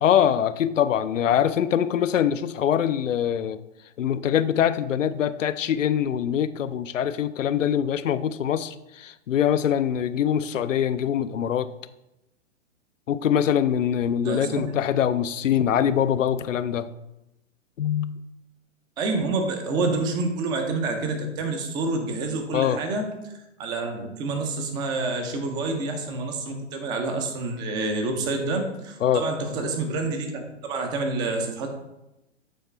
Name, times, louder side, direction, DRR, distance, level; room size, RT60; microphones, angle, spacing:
voice 1, 0.0-3.6 4.0-11.7 13.1-16.9 17.8-18.2 22.5-22.8 29.0-29.3, left 9 dB, 80° left, 14 dB, 0.5 m, -23 dB
voice 2, 14.2-14.7 19.0-23.3 23.6-31.7, right 3 dB, 10° right, 5 dB, 0.4 m, -28 dB
8.3 x 4.3 x 3.2 m, 0.93 s
figure-of-eight pair, 120°, 38 cm